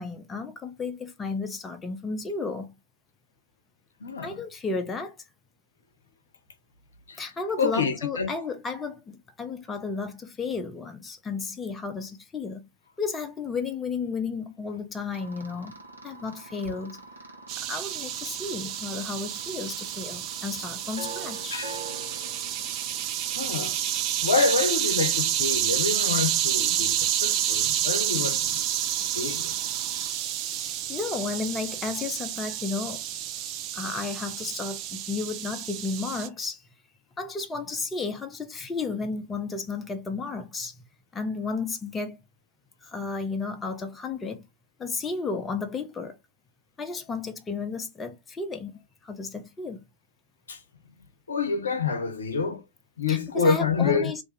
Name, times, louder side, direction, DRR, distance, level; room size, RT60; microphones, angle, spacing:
voice 1, 0.0-2.7 4.2-5.2 7.2-12.6 13.0-15.7 16.0-17.0 17.7-21.6 30.9-33.0 33.7-36.6 37.2-40.8 41.1-42.2 42.8-44.4 44.8-46.2 46.8-49.8 53.1-54.2, left 4 dB, 15° left, 0.6 m, -33 dB
voice 2, 4.0-4.4 7.1-7.3 7.6-8.3 21.5-21.8 23.3-23.8 24.2-28.6 29.1-29.5 50.5-50.6 51.3-52.6 53.0-54.1, left 4 dB, 70° left, 0.6 m, -27 dB
sound 1, 15.1-30.1, right 3 dB, 80° right, 0.8 m, -45 dB
sound 2, 17.5-36.3, right 11 dB, 40° right, 0.4 m, -29 dB
2.6 x 2.3 x 4.0 m
figure-of-eight pair, 90°, 0 cm